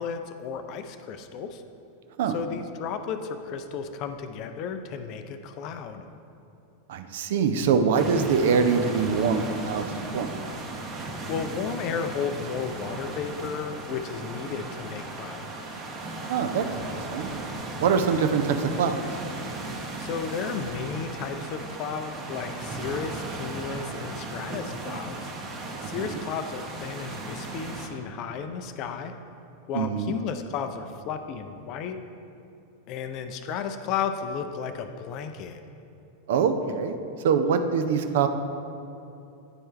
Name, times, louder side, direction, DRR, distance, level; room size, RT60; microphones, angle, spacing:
voice 1, 0.0-1.6 2.3-6.1 11.3-15.4 20.0-25.1 25.8-29.1 29.7-32.0 32.9-35.6, left 6 dB, 40° left, 7 dB, 0.4 m, -33 dB
voice 2, 6.9-9.8 10.1-10.3 16.3-16.8 17.1-17.3 17.8-19.0 26.0-26.2 29.7-30.1 36.3-37.0 37.2-38.3, right 6 dB, 55° right, 8 dB, 0.4 m, -24 dB
sound 1, 7.9-27.9, right 2 dB, 25° right, 0.8 m, -36 dB
9.7 x 4.4 x 3.2 m, 2.8 s
figure-of-eight pair, 90°, 0 cm